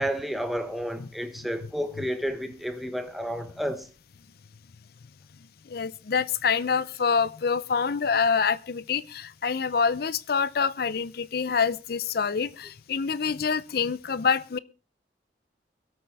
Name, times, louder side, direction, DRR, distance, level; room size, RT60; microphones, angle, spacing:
voice 1, 0.0-3.9, equal, ahead, 1.2 m, -31 dB
voice 2, 5.7-14.6, left 6 dB, 60° left, 0.5 m, -26 dB
23.5 x 8.6 x 3.4 m
head